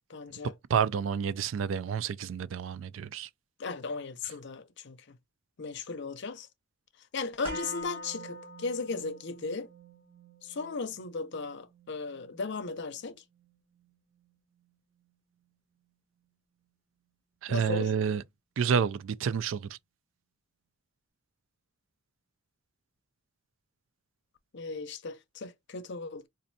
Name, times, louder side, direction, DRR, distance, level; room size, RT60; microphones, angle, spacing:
voice 1, 0.1-0.5 3.6-5.2 5.6-6.5 7.1-9.7 10.4-13.2 17.5-17.9 24.5-26.3, left 4 dB, 60° left, 0.6 m, -36 dB
voice 2, 0.7-3.3 17.4-18.2 18.6-19.7, right 7 dB, 75° right, 0.3 m, -29 dB
sound 1, 7.4-15.5 15.8-15.9, equal, 30° right, 2.1 m, -46 dB
4.2 x 2.5 x 2.6 m
head